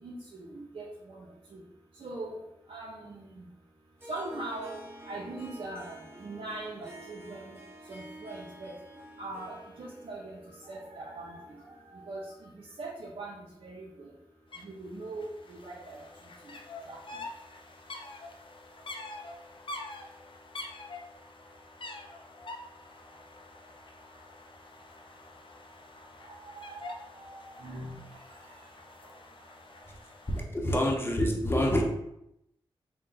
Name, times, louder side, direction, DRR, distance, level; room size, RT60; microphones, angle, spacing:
voice 1, 0.0-1.6 2.0-2.4 2.7-3.5 4.1-5.9 6.2-7.6 7.9-8.7 9.2-10.4 10.6-11.4 11.9-14.1 14.6-16.0 16.9-17.0 26.5-28.0, right 2 dB, 65° right, -3 dB, 0.7 m, -41 dB
Harp, 4.0-12.4, right 1 dB, 25° right, 1.0 m, -50 dB
sound 1, 14.5-14.6 14.9-30.4, left 2 dB, 60° left, 0.5 m, -46 dB
voice 2, 30.5-31.8, left 1 dB, 20° left, 0 dB, 0.9 m, -26 dB
3.9 x 2.2 x 3.9 m, 0.82 s
cardioid pair, 45°, 10 cm